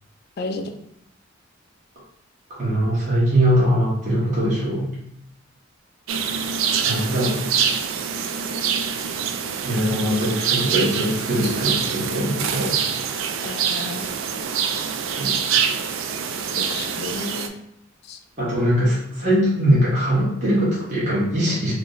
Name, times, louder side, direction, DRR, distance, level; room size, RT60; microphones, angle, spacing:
voice 1, 0.4-0.7 13.4-14.1 16.6-17.5 18.1-18.2, left 3 dB, 55° left, 6 dB, 0.4 m, -32 dB
voice 2, 2.6-4.9 6.8-7.4 9.6-12.8 15.1-15.3 18.4-21.7, equal, 40° right, -8 dB, 1.0 m, -21 dB
sound 1, 6.1-17.5, right 7 dB, 70° right, 0.3 m, -25 dB
3.3 x 2.1 x 3.8 m, 0.73 s
head